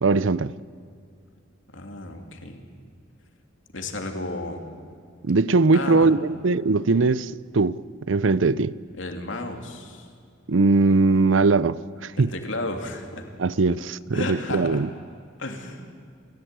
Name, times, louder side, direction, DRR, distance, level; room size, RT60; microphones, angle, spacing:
voice 1, 0.0-0.5 5.2-7.8 8.1-8.7 10.5-12.3 13.4-14.9, right 3 dB, 70° right, 0.6 m, -20 dB
voice 2, 1.7-2.6 3.7-4.6 5.7-6.1 9.0-10.1 12.2-13.2 14.1-14.8 15.4-15.8, left 2 dB, 70° left, 3.0 m, -33 dB
29.0 x 15.5 x 9.1 m
head